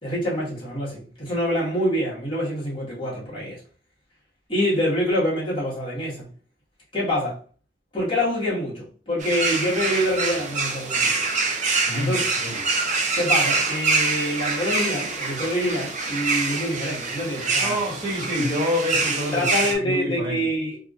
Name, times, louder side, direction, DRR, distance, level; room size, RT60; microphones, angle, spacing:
voice 1, 0.0-3.6 4.5-6.3 6.9-7.4 7.9-11.3 11.9-12.2 13.1-17.8 19.3-20.8, equal, 30° left, 1.5 m, -26 dB
sound 1, 9.2-19.8, right 3 dB, 40° right, 0.6 m, -25 dB
voice 2, 11.9-12.6 17.6-19.5 19.8-20.4, left 1 dB, 20° right, 1.5 m, -27 dB
3.4 x 2.5 x 2.4 m
head